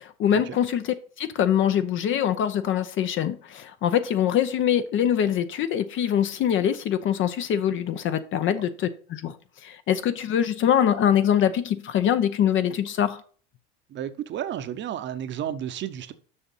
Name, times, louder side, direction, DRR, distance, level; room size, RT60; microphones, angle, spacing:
voice 1, 0.0-9.4 9.6-13.2, left 9 dB, 40° left, 0.7 m, -24 dB
voice 2, 13.9-16.1, right 10 dB, 40° right, 0.8 m, -32 dB
6.4 x 5.9 x 5.5 m
supercardioid pair, 120°, 30 cm